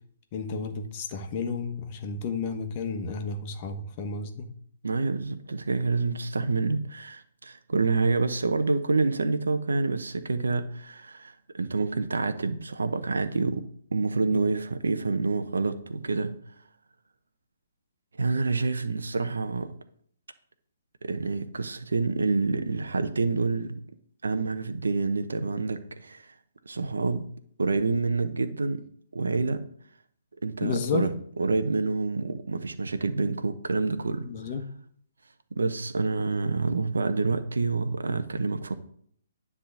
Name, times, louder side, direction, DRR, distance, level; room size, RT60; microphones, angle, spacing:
voice 1, 0.3-4.5 14.3-14.4 30.6-31.1 34.2-34.7, left 4 dB, 35° left, 6 dB, 1.3 m, -32 dB
voice 2, 4.8-13.6 13.9-16.3 18.2-19.7 21.0-23.8 24.2-26.3 26.7-27.3 27.6-28.8 29.1-29.6 30.4-31.1 31.4-34.3 35.5-38.8, right 3 dB, 80° right, 9 dB, 0.9 m, -27 dB
10.0 x 3.7 x 7.0 m, 0.63 s
figure-of-eight pair, 135°, 0 cm